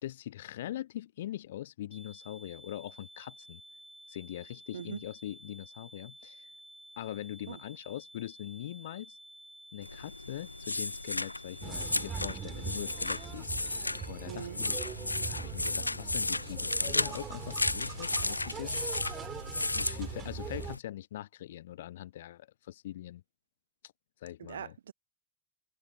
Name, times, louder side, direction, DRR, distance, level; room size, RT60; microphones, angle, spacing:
voice 1, 0.0-3.6 4.1-6.5 7.0-9.2 9.7-13.8 14.1-19.0 19.7-23.2 24.2-24.8, left 13 dB, 55° left, 1.1 m, -42 dB
sound 1, 1.9-13.3, right 1 dB, ahead, 1.1 m, -53 dB
sound 2, 9.8-20.8, left 2 dB, 85° left, 0.5 m, -34 dB
sound 3, 11.6-20.8, right 8 dB, 20° right, 2.1 m, -42 dB
voice 2, 14.3-14.6 24.4-24.9, right 8 dB, 65° right, 1.0 m, -41 dB
figure-of-eight pair, 90°, 0 cm